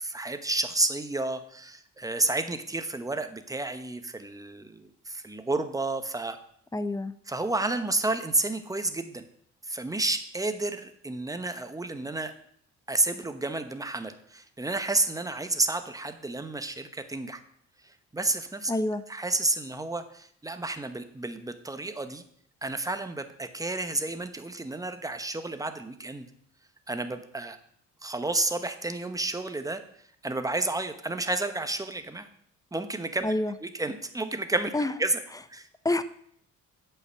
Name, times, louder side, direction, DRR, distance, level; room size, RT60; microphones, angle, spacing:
voice 1, 0.0-6.4 7.3-9.2 9.6-12.3 12.9-17.4 17.8-18.7 19.1-22.2 22.6-26.3 26.9-27.6 28.0-29.8 30.2-32.3 32.7-33.3 33.6-34.7 35.0-35.2 35.5-35.7, right 2 dB, 10° right, 9 dB, 1.0 m, -31 dB
voice 2, 6.7-7.1 18.7-19.0 33.2-33.5 34.7-34.9 35.8-36.0, left 2 dB, 10° left, 13 dB, 0.6 m, -27 dB
8.0 x 5.8 x 6.9 m, 0.66 s
cardioid pair, 90°, 30 cm